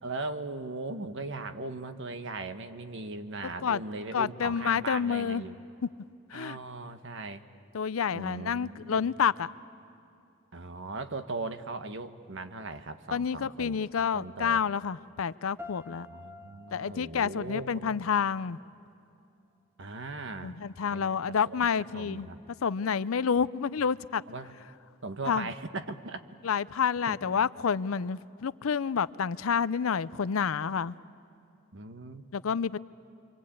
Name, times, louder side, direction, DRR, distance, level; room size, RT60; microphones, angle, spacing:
voice 1, 0.0-5.6 6.3-7.4 8.1-9.2 10.5-14.6 16.1-18.0 19.8-20.6 20.9-21.6 21.9-22.4 24.3-24.5 25.0-26.2 27.1-27.5 31.7-32.3, right 3 dB, 65° right, 1.2 m, -39 dB
voice 2, 3.4-3.8 4.1-5.5 6.3-6.6 7.7-9.5 13.1-16.1 16.7-18.6 20.4-22.3 22.6-24.2 25.3-25.5 26.4-31.0 32.3-32.8, left 6 dB, 90° left, 0.5 m, -29 dB
sound 1, 15.6-18.6, left 3 dB, 10° right, 0.9 m, -50 dB
26.5 x 25.0 x 8.6 m
head